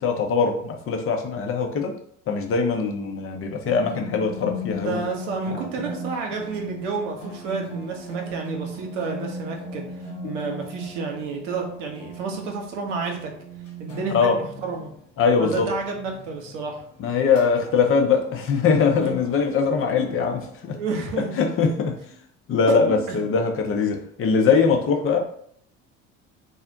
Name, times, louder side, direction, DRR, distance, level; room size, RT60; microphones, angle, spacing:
voice 1, 0.0-1.9 2.3-5.0 5.5-5.7 10.2-10.4 14.1-14.3 15.2-15.7 17.0-20.8 21.4-21.9 22.5-25.2, left 5 dB, 35° left, 3 dB, 0.6 m, -22 dB
sound 1, 3.6-20.5, right 1 dB, 85° left, 1.3 m, -38 dB
voice 2, 4.8-13.3 13.8-14.9 15.4-16.8 19.0-19.1 20.0-20.2 20.7-21.3 22.9-23.2, right 4 dB, 70° right, 1 dB, 0.8 m, -30 dB
2.5 x 2.0 x 3.7 m, 0.63 s
figure-of-eight pair, 55°, 37 cm